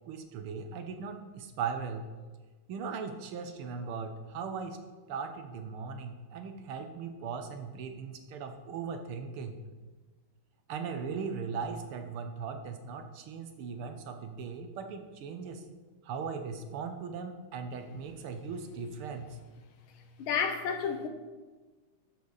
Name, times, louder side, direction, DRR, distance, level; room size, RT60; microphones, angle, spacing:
voice 1, 0.1-2.1 2.7-4.8 5.1-9.6 10.7-15.6 16.0-19.4, right 5 dB, 80° right, 6 dB, 1.8 m, -38 dB
voice 2, 20.2-21.1, left 6 dB, 75° left, 7 dB, 1.7 m, -30 dB
12.5 x 6.9 x 4.0 m, 1.3 s
omnidirectional pair, 2.4 m